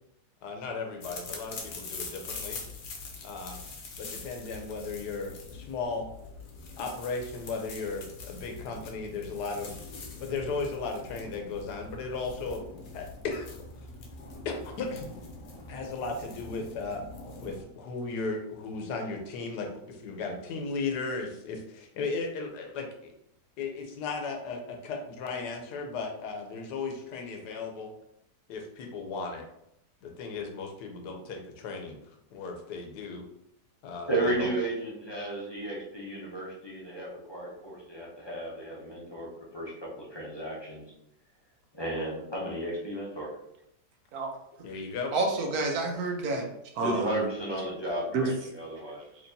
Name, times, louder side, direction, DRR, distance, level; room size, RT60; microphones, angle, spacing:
voice 1, 0.4-2.6 3.2-3.6 3.9-6.1 6.8-9.8 10.2-12.6 12.9-13.5 14.4-15.1 15.7-17.0 17.4-23.1 23.6-27.9 28.5-29.4 30.0-32.0 32.3-33.2 33.8-34.5 44.6-45.1, left 4 dB, 75° left, 3 dB, 1.3 m, -36 dB
sound 1, 1.0-17.6, left 4 dB, 60° left, 1.0 m, -44 dB
voice 2, 34.1-39.3 39.5-40.8 41.7-43.3 46.8-49.0, right 1 dB, 30° left, -4 dB, 0.4 m, -33 dB
voice 3, 45.1-46.4 46.7-47.3 48.1-48.3, right 3 dB, 65° right, 2 dB, 1.1 m, -28 dB
4.5 x 3.0 x 2.7 m, 0.78 s
omnidirectional pair, 1.8 m